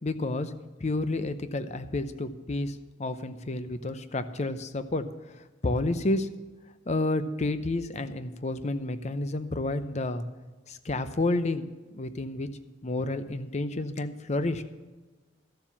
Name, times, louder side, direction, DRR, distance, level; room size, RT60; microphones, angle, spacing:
voice 1, 0.0-0.5 0.8-5.1 5.3-6.3 6.9-10.2 10.7-12.5 12.8-14.6, left 2 dB, 35° left, 11 dB, 0.7 m, -30 dB
13.0 x 7.3 x 7.1 m, 1.2 s
head